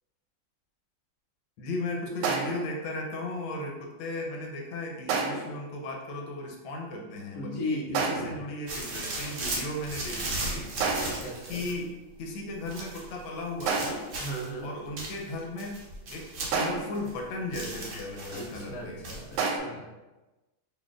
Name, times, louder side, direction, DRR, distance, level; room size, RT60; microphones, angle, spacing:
voice 1, 1.6-10.7 11.5-14.0 14.6-15.8 16.1-19.0, left 2 dB, 80° left, 0 dB, 1.5 m, -36 dB
sound 1, 2.2-2.7 5.1-5.6 7.9-8.5 10.8-11.3 13.7-14.2 16.5-17.0 19.4-19.6, right 4 dB, 80° right, 1.3 m, -29 dB
voice 2, 7.3-8.4 10.9-11.6 14.2-14.7 18.3-19.9, equal, 60° left, -2 dB, 1.0 m, -37 dB
sound 2, 8.7-11.8 12.7-13.1 13.6-14.5 15.0-17.2 17.5-18.6 19.0-19.4, right 2 dB, 60° right, 0.8 m, -36 dB
4.1 x 3.3 x 2.3 m, 1.1 s
omnidirectional pair, 2.2 m